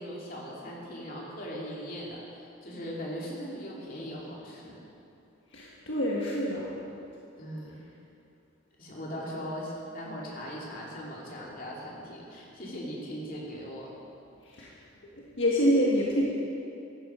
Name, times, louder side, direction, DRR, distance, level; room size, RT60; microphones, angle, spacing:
voice 1, 0.0-4.8 7.4-7.8 8.8-13.9, equal, 45° left, -4 dB, 2.9 m, -39 dB
voice 2, 5.5-6.7 14.5-14.7 15.4-16.2, equal, 70° left, -4 dB, 1.6 m, -26 dB
15.0 x 11.5 x 5.0 m, 2.7 s
head